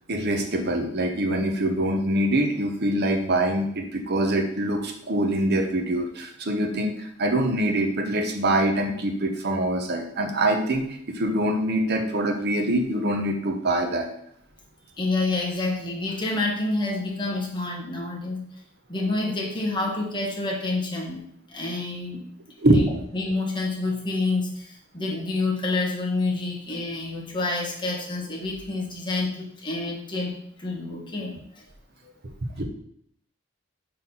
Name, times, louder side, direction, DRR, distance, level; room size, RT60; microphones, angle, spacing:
voice 1, 0.1-14.1 22.6-23.0 32.6-32.7, right 1 dB, 55° right, 4 dB, 0.9 m, -24 dB
voice 2, 15.0-18.5 18.9-21.2 21.5-22.2 22.7-22.9 23.1-30.3 30.6-31.6, left 2 dB, 25° left, -1 dB, 1.5 m, -28 dB
5.5 x 4.4 x 5.6 m, 0.69 s
head